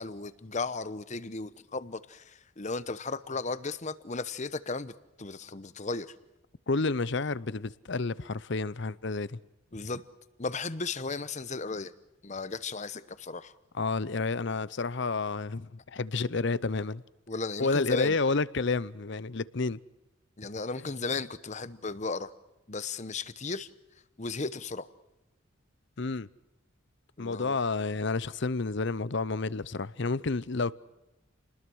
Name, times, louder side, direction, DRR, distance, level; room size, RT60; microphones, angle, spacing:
voice 1, 0.0-4.9 5.2-6.1 9.7-10.0 10.4-11.9 12.2-13.5 17.3-18.2 20.4-22.3 22.7-23.7 24.2-24.9 27.2-27.6, left 3 dB, 35° left, 0.9 m, -35 dB
voice 2, 6.7-9.4 13.8-17.0 17.6-19.8 26.0-26.3 27.2-30.7, left 3 dB, 60° left, 0.7 m, -30 dB
29.5 x 20.5 x 6.3 m
head